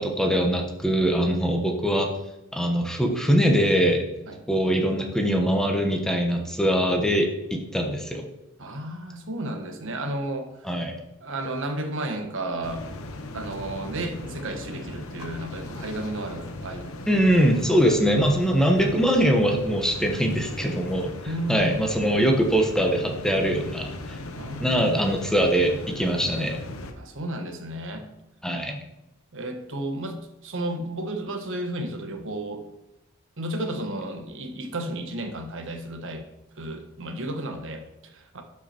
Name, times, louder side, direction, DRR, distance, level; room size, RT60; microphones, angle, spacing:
voice 1, 0.0-2.1 2.5-4.0 4.5-8.3 10.7-11.0 17.1-21.1 21.5-24.2 24.6-26.6 28.4-28.8, equal, 5° left, 2 dB, 1.1 m, -22 dB
voice 2, 8.6-10.8 11.2-12.9 13.3-16.9 21.3-21.8 24.3-25.0 27.0-28.1 29.3-32.6 33.4-36.3 36.6-38.4, right 1 dB, 60° right, 6 dB, 1.3 m, -33 dB
sound 1, 12.6-26.9, left 2 dB, 70° left, 1.0 m, -38 dB
11.5 x 6.1 x 4.4 m, 0.94 s
head